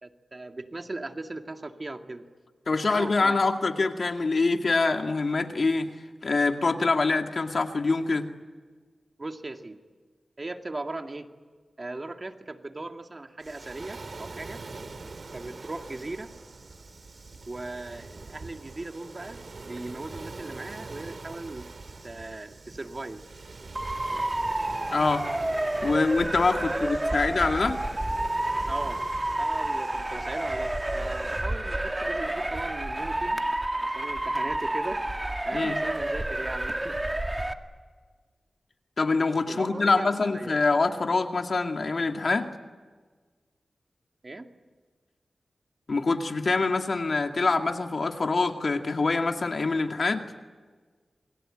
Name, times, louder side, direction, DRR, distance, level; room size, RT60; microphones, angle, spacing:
voice 1, 0.0-2.3 2.8-3.4 9.2-9.8 10.4-11.3 11.8-14.6 15.3-16.3 17.5-21.7 22.0-23.2 25.7-26.0 26.6-27.2 28.7-29.0 29.4-33.4 33.8-37.0 39.5-40.7 44.2-44.5, right 2 dB, 40° right, 5 dB, 2.2 m, -38 dB
voice 2, 2.7-5.9 6.2-8.3 24.9-25.3 25.8-27.8 35.5-35.8 39.0-42.5 45.9-50.2, left 3 dB, 60° left, 5 dB, 2.3 m, -25 dB
Waves surf, 13.4-31.5, right 3 dB, 60° right, 2.4 m, -44 dB
Motor vehicle (road) / Siren, 23.7-37.5, right 1 dB, 20° right, 2.1 m, -30 dB
28.5 x 22.0 x 9.0 m, 1.5 s
cardioid pair, 60°, 0 cm